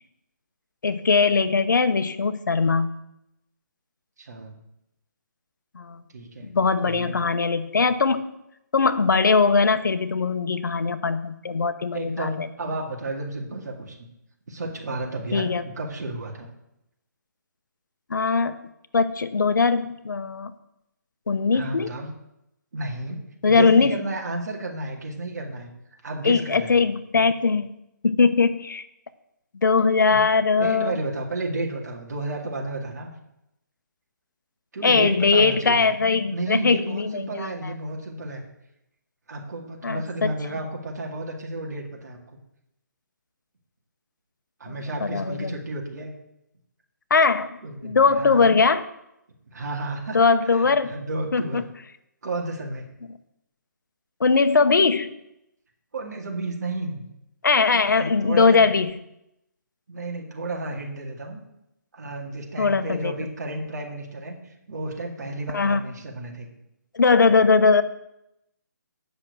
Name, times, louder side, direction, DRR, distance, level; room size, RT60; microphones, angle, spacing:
voice 1, 0.8-3.0 5.7-6.0 6.4-8.2 8.7-12.5 15.3-15.6 18.1-18.6 18.9-20.5 21.3-21.9 23.4-24.0 26.2-27.7 28.0-28.8 29.6-30.9 34.8-37.5 39.8-40.3 44.7-45.5 47.1-47.5 47.8-48.8 50.1-50.9 51.3-51.6 54.2-55.1 57.4-58.9 62.6-63.1 65.5-65.8 66.9-67.8, left 4 dB, 80° left, 12 dB, 0.8 m, -20 dB
voice 2, 4.2-4.5 6.1-6.5 6.8-7.3 11.9-14.0 14.5-16.5 21.5-22.1 22.7-25.7 26.0-26.8 30.1-30.2 30.6-33.1 34.7-35.8 36.3-38.5 39.3-42.2 44.6-46.1 47.6-48.6 49.5-50.2 50.4-51.6 52.2-52.9 55.9-57.1 58.0-58.7 59.9-61.4 61.9-66.5, right 2 dB, 60° right, 1 dB, 2.1 m, -32 dB
8.4 x 6.1 x 6.7 m, 0.84 s
hypercardioid pair, 165°, 10 cm